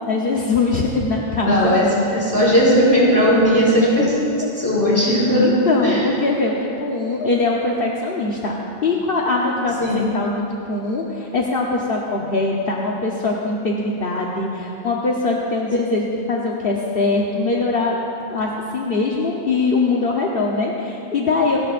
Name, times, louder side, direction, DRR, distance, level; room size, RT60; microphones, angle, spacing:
voice 1, 0.0-1.8 4.4-4.5 5.3-18.0 18.3-21.6, left 3 dB, 60° left, -2 dB, 1.2 m, -22 dB
voice 2, 1.4-1.8 2.1-4.2 4.6-5.5 5.8-6.1 9.8-10.0, equal, 15° left, -7 dB, 3.7 m, -16 dB
28.5 x 12.5 x 2.5 m, 2.8 s
omnidirectional pair, 1.1 m